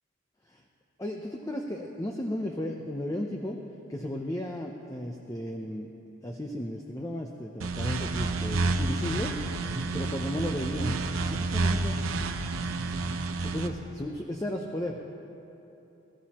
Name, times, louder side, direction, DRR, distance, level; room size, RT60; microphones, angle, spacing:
voice 1, 1.0-3.6 3.9-5.9 6.2-9.4 9.9-11.0 11.3-12.0 13.4-15.0, left 1 dB, 15° left, 1 dB, 0.6 m, -34 dB
sound 1, 7.6-13.7, right 3 dB, 85° right, 0.8 m, -30 dB
sound 2, 7.8-13.4, right 1 dB, 40° right, 0.8 m, -42 dB
21.5 x 13.5 x 3.0 m, 2.9 s
head